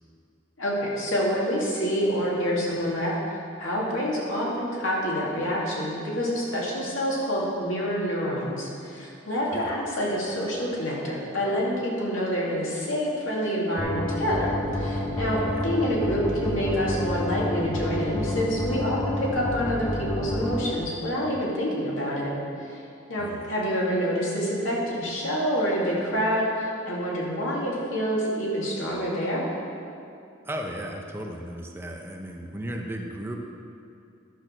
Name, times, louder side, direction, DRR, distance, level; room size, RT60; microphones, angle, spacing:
voice 1, 0.6-3.2 3.6-22.3 22.7-22.8 23.1-29.5, equal, 90° left, -5 dB, 2.6 m, -27 dB
sound 1, 13.8-20.6, left 1 dB, 25° left, 1.5 m, -29 dB
voice 2, 23.2-23.5 30.4-33.5, right 1 dB, 10° right, 1 dB, 0.7 m, -35 dB
11.0 x 6.3 x 6.2 m, 2.6 s
head